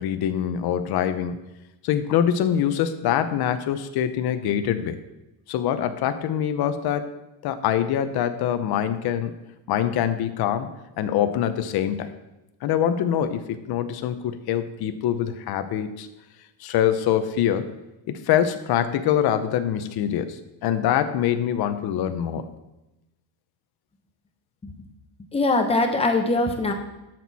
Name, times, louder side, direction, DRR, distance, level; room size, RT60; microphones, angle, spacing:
voice 1, 0.0-1.4 1.8-5.0 5.5-7.1 7.4-9.3 9.7-10.7 11.0-12.1 12.6-16.1 16.6-17.7 18.1-20.4 20.6-22.5, left 10 dB, 50° left, 9 dB, 0.8 m, -24 dB
voice 2, 25.3-26.7, left 2 dB, 15° left, 4 dB, 0.8 m, -22 dB
12.0 x 6.2 x 4.2 m, 0.96 s
cardioid pair, 170°, 47 cm